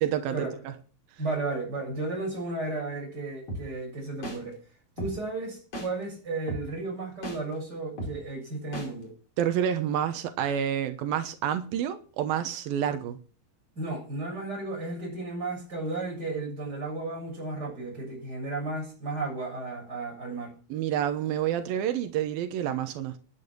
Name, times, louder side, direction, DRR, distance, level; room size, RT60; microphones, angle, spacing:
voice 1, 0.0-0.7 9.4-13.2 20.7-23.2, right 10 dB, 90° right, 2.9 m, -28 dB
voice 2, 1.2-4.6 5.0-9.1 13.8-20.6, right 3 dB, 25° right, 7.8 m, -34 dB
sound 1, 3.5-3.6 4.2-4.4 5.0-5.1 5.7-5.9 6.5-6.6 7.2-7.4 8.0-8.1 8.7-8.9, equal, 45° left, 6.2 m, -34 dB
12.5 x 10.5 x 6.2 m
omnidirectional pair, 4.1 m